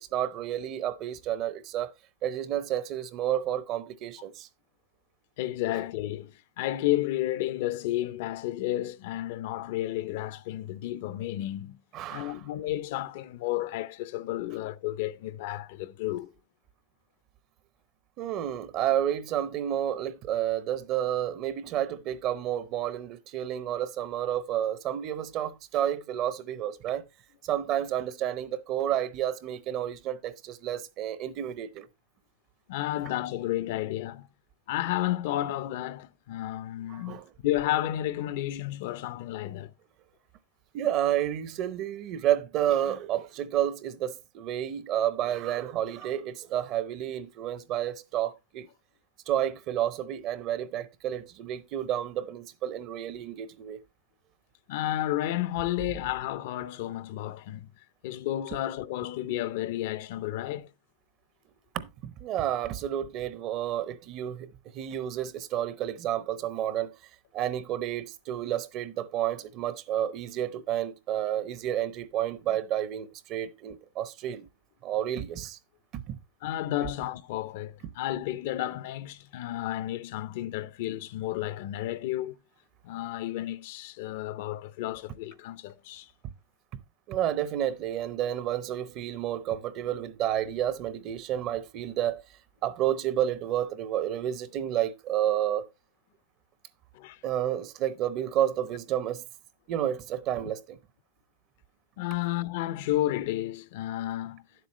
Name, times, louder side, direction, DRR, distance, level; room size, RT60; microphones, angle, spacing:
voice 1, 0.1-1.9 2.2-4.5 11.9-12.4 18.2-27.1 27.4-31.9 36.9-37.3 40.7-48.7 49.3-53.8 61.7-66.9 67.3-74.5 74.8-75.6 75.9-76.2 86.7-86.8 87.1-92.2 92.6-95.7 97.2-99.2 99.7-100.8, right 11 dB, 35° right, 0.7 m, -30 dB
voice 2, 5.4-11.8 12.1-16.3 32.7-34.3 34.7-39.7 54.7-57.7 58.0-60.7 76.4-82.4 82.8-86.1 96.9-97.2 102.0-104.4, left 14 dB, 60° left, 0.6 m, -32 dB
10.0 x 7.7 x 3.1 m
supercardioid pair, 150°, 0 cm